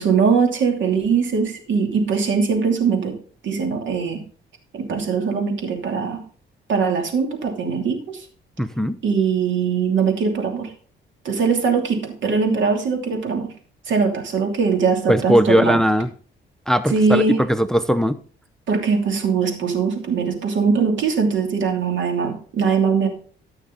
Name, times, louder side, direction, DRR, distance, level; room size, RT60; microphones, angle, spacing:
voice 1, 0.0-3.2 3.4-4.2 4.7-6.2 6.7-8.2 9.0-10.7 11.2-13.5 13.9-15.8 16.9-17.4 18.7-23.1, right 5 dB, 70° right, 4 dB, 2.9 m, -21 dB
voice 2, 8.6-8.9 15.1-16.1 16.7-18.2, equal, 5° left, 12 dB, 0.6 m, -18 dB
14.5 x 6.4 x 4.0 m, 0.44 s
cardioid pair, 90°, 20 cm